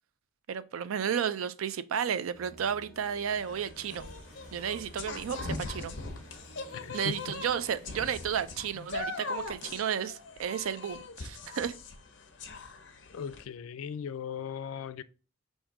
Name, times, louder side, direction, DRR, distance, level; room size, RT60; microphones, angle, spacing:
voice 1, 0.5-4.1 4.5-5.9 6.9-11.7, right 8 dB, 85° right, 0.4 m, -32 dB
sound 1, 2.3-7.8, equal, ahead, 0.8 m, -53 dB
sound 2, 3.3-13.4, left 3 dB, 60° left, 0.7 m, -41 dB
sound 3, 3.7-9.7, right 1 dB, 60° right, 1.5 m, -57 dB
voice 2, 6.7-7.4 8.7-8.9 13.1-15.0, left 7 dB, 85° left, 0.3 m, -38 dB
3.6 x 2.6 x 4.5 m
head